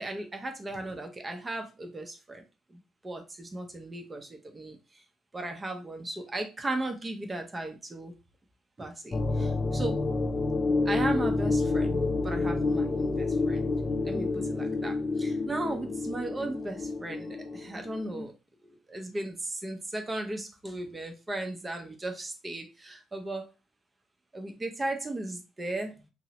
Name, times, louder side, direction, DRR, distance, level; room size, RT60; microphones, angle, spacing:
voice 1, 0.0-2.4 2.7-5.0 5.3-8.1 8.8-10.0 10.8-13.7 14.0-18.3 18.6-23.5 24.3-26.1, right 2 dB, 25° right, 4 dB, 0.6 m, -36 dB
sound 1, 9.1-18.3, left 3 dB, 35° left, 0.5 m, -29 dB
2.8 x 2.0 x 2.8 m, 0.30 s
hypercardioid pair, 50°, 0 cm